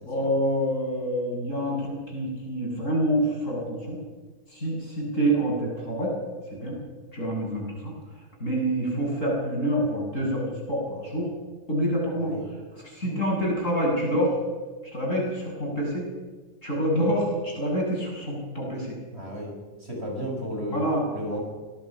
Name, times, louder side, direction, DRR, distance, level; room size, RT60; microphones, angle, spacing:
voice 1, 0.1-4.0 4.5-6.1 6.5-6.7 7.1-7.9 8.4-11.3 11.7-12.3 12.7-14.4 14.8-16.0 16.6-19.0 20.7-21.0, right 1 dB, 55° left, -3 dB, 8.1 m, -27 dB
voice 2, 19.1-19.6 19.8-20.8 21.1-21.4, equal, 40° right, 0 dB, 6.2 m, -33 dB
25.5 x 18.0 x 6.2 m, 1.4 s
omnidirectional pair, 1.6 m